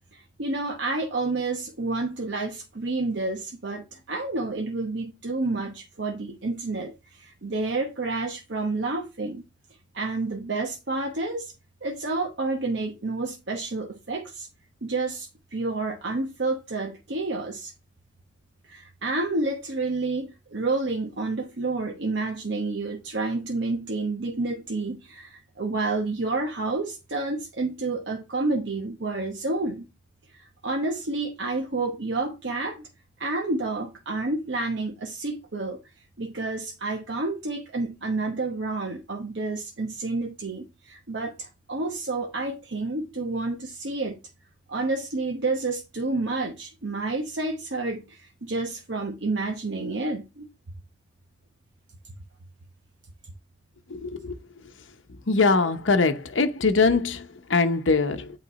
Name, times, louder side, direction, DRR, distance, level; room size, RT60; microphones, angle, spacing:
voice 1, 0.1-9.4 9.9-11.5 11.8-14.5 14.8-17.7 18.7-29.9 30.3-32.9 33.2-35.8 36.2-44.2 44.7-50.5, right 3 dB, 65° right, 1.0 m, -29 dB
voice 2, 53.9-54.3 55.3-58.3, left 4 dB, 85° left, 0.9 m, -22 dB
8.6 x 3.2 x 4.2 m
head